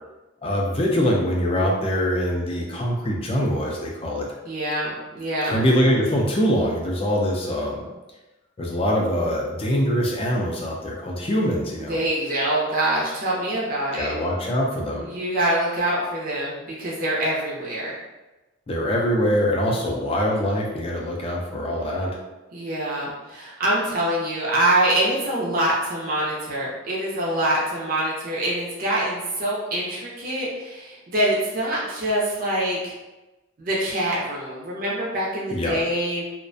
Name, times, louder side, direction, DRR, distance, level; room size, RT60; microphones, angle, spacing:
voice 1, 0.4-4.3 5.5-7.9 8.6-12.0 14.0-15.1 18.7-22.1 35.5-35.8, equal, 25° left, -1 dB, 0.3 m, -23 dB
voice 2, 4.4-5.6 11.9-14.1 15.0-17.9 22.5-32.9 33.6-36.2, right 1 dB, 40° right, -5 dB, 0.5 m, -25 dB
2.4 x 2.1 x 2.5 m, 1.1 s
head